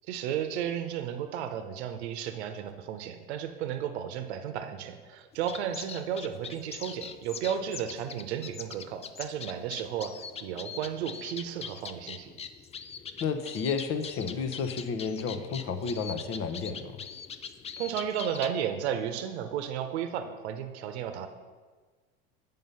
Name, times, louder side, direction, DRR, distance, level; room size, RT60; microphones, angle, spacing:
voice 1, 0.1-10.2 10.4-12.3 17.8-21.3, right 9 dB, 80° right, 8 dB, 0.8 m, -33 dB
sound 1, 5.3-18.5, left 6 dB, 20° left, 0.4 m, -43 dB
voice 2, 13.2-16.9, left 5 dB, 40° left, 8 dB, 0.9 m, -31 dB
7.7 x 5.4 x 5.5 m, 1.4 s
hypercardioid pair, 95°, 32 cm